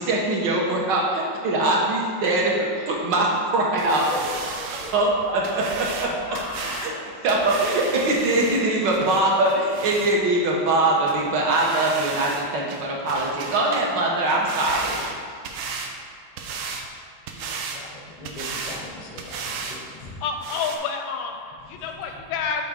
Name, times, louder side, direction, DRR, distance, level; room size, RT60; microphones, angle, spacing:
voice 1, 0.0-4.1 4.9-5.1 5.5-6.1 6.8-6.9 7.2-15.0, right 2 dB, 70° right, -2 dB, 1.5 m, -22 dB
sound 1, 3.8-10.2 10.7-10.8 11.1-11.2 11.5-12.4 12.7-13.9 14.2-15.9 16.4-16.9 17.3-17.8 18.2-18.8 19.2-19.8 20.1-20.2 20.4-20.8, right 4 dB, 90° right, 1.4 m, -34 dB
voice 2, 4.5-4.9 5.3-5.6 6.3-6.9 17.3-20.2 21.6-22.2, left 3 dB, 55° left, -1 dB, 0.4 m, -39 dB
voice 3, 20.2-22.6, left 6 dB, 85° left, 4 dB, 1.4 m, -29 dB
6.3 x 3.5 x 5.1 m, 2.1 s
omnidirectional pair, 2.2 m